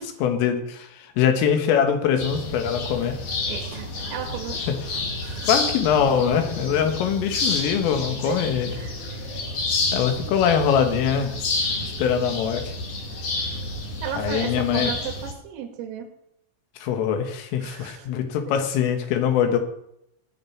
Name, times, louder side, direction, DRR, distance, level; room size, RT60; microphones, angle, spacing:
voice 1, 0.2-3.2 4.7-4.8 5.5-8.7 9.9-11.3 11.8-12.7 14.2-14.9 16.8-19.6, left 8 dB, 75° left, 6 dB, 4.1 m, -23 dB
sound 1, 2.2-15.3, left 2 dB, 50° left, 2.7 m, -29 dB
voice 2, 3.5-4.6 5.2-5.5 8.2-8.4 8.7-9.0 9.3-9.4 10.2-10.3 14.0-16.1 17.6-18.1, right 8 dB, 75° right, 3 dB, 4.7 m, -34 dB
19.5 x 6.7 x 6.0 m, 0.76 s
omnidirectional pair, 6.0 m